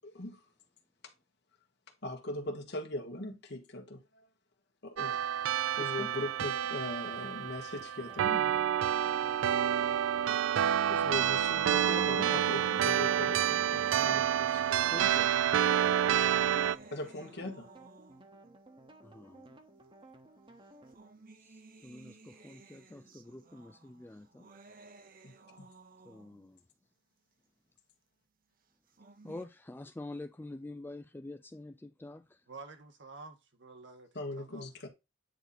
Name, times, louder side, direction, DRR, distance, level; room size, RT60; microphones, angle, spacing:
voice 1, 0.0-0.4 2.0-4.0 4.8-5.2 5.8-8.5 11.0-15.1 16.9-17.7 25.2-25.7 34.1-34.9, left 1 dB, 60° left, 1.6 m, -40 dB
sound 1, 5.0-16.8, right 9 dB, 85° right, 0.3 m, -29 dB
sound 2, 7.9-21.0, right 2 dB, 25° right, 1.2 m, -56 dB
voice 2, 10.9-11.2 14.0-14.1 14.9-15.3 15.9-16.8 19.0-19.6 21.4-24.5 26.0-26.6 29.2-32.4, left 2 dB, 10° left, 0.3 m, -47 dB
sound 3, 13.4-18.5 19.4-19.5 20.6-26.5 28.7-29.4, right 3 dB, 50° right, 1.0 m, -57 dB
voice 3, 32.5-34.9, right 3 dB, 70° right, 1.8 m, -50 dB
9.2 x 4.2 x 4.1 m
head